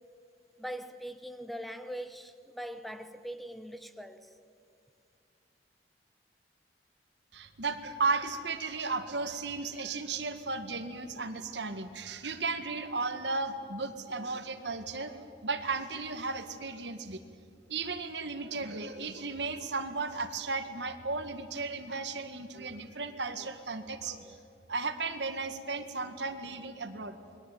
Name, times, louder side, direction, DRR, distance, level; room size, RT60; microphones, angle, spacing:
voice 1, 0.6-4.3, equal, ahead, 1.0 m, -41 dB
voice 2, 7.3-17.2 17.7-24.4 24.7-27.2, right 4 dB, 80° right, 1.9 m, -35 dB
28.5 x 22.0 x 9.3 m
head